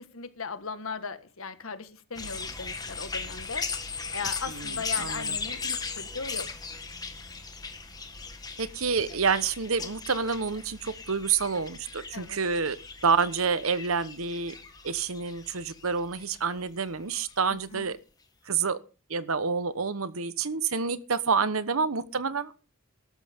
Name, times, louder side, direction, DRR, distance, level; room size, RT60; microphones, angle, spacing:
voice 1, 0.0-3.7 4.1-6.5 12.1-12.4 17.5-17.9, left 5 dB, 80° left, 1.5 m, -38 dB
sound 1, 2.1-16.6 17.3-17.4, left 5 dB, 20° left, 1.6 m, -38 dB
voice 2, 4.5-5.4 8.6-12.8 13.0-14.5 14.8-18.0 18.5-18.8 19.1-22.5, right 5 dB, 90° right, 1.1 m, -28 dB
15.0 x 12.5 x 3.6 m
head